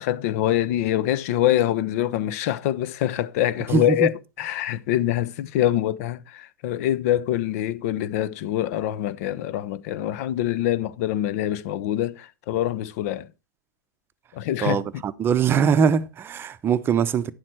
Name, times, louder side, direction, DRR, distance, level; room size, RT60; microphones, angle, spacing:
voice 1, 0.0-13.3 14.3-14.8, left 12 dB, 50° left, 0.8 m, -25 dB
voice 2, 3.7-4.1 14.6-17.3, right 6 dB, 20° right, 0.8 m, -22 dB
10.5 x 7.5 x 4.4 m
hypercardioid pair, 110°, 10 cm